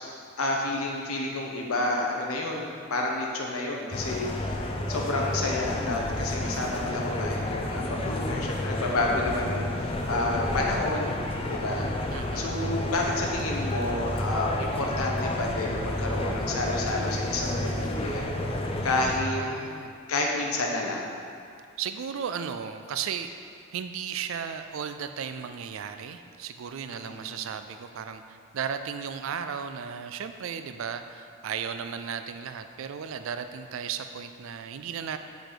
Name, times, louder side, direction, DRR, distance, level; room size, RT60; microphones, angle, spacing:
voice 1, 0.4-4.3 4.9-11.2 11.5-11.9 12.3-18.2 18.8-19.4 20.1-21.1 26.9-27.3, left 2 dB, 90° left, 0 dB, 0.8 m, -30 dB
sound 1, 3.9-19.2, left 1 dB, 25° left, 0.4 m, -30 dB
voice 2, 12.1-12.5 19.2-20.0 21.8-23.3 23.7-35.2, right 7 dB, 70° right, 9 dB, 0.3 m, -35 dB
6.7 x 4.7 x 4.0 m, 2.3 s
head